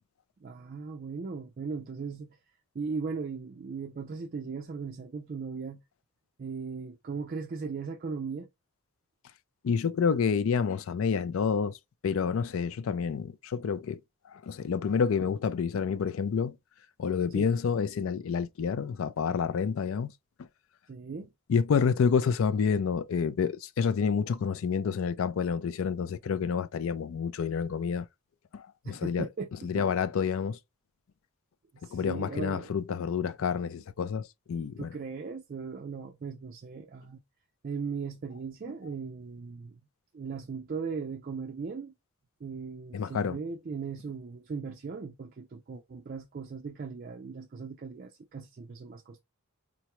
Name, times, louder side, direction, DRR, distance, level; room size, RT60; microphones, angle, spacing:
voice 1, 0.4-2.4 2.7-5.8 6.4-8.5 17.3-17.5 20.9-21.3 28.8-29.8 31.7-32.7 34.8-37.2 37.6-39.8 40.1-41.9 42.4-49.2, right 5 dB, 40° right, 0.3 m, -38 dB
voice 2, 9.6-11.7 12.0-14.0 14.5-16.5 17.0-20.1 21.5-28.1 28.5-29.3 29.6-30.6 31.9-34.9 42.9-43.4, left 6 dB, 65° left, 0.4 m, -28 dB
3.9 x 2.2 x 2.9 m
head